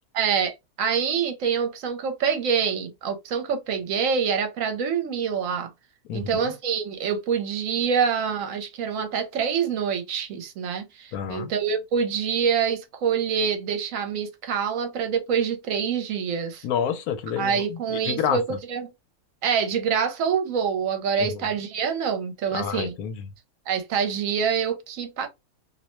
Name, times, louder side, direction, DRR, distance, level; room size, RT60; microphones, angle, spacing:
voice 1, 0.2-5.7 6.1-16.6 17.4-18.4 18.7-18.9 19.4-22.9 23.7-25.3, right 7 dB, 70° right, 1.0 m, -26 dB
voice 2, 6.1-6.5 11.1-11.5 16.6-18.6 21.2-21.5 22.5-23.3, left 8 dB, 85° left, 1.1 m, -29 dB
2.6 x 2.1 x 2.9 m
omnidirectional pair, 1.5 m